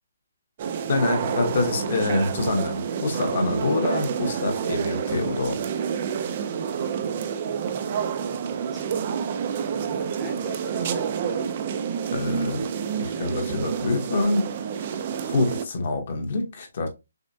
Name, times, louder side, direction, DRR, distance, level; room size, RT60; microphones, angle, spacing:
sound 1, 0.6-15.6, right 7 dB, 25° right, 0.4 m, -28 dB
voice 1, 0.9-5.6 12.1-12.6 13.0-14.5 15.2-16.9, left 3 dB, 40° left, 1.0 m, -26 dB
voice 2, 7.7-8.9 9.9-11.6, right 2 dB, 10° right, 0.8 m, -40 dB
6.2 x 2.1 x 2.6 m
hypercardioid pair, 175°, 0 cm